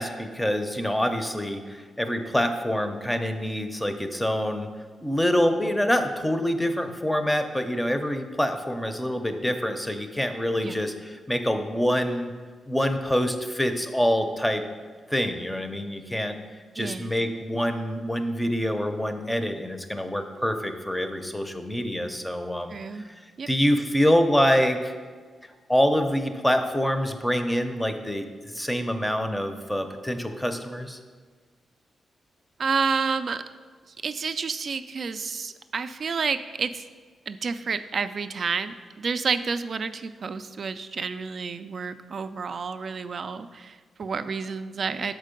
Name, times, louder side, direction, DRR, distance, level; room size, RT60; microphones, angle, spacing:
voice 1, 0.0-4.7 5.0-12.3 12.7-14.6 15.1-16.4 16.7-23.1 23.5-24.9 25.7-31.0, equal, 10° left, 7 dB, 0.6 m, -26 dB
voice 2, 16.8-17.2 22.7-23.0 23.4-23.5 32.6-33.4 34.0-36.8 37.3-45.1, right 5 dB, 55° right, 10 dB, 0.3 m, -30 dB
6.5 x 4.5 x 5.1 m, 1.5 s
cardioid pair, 95°, 0 cm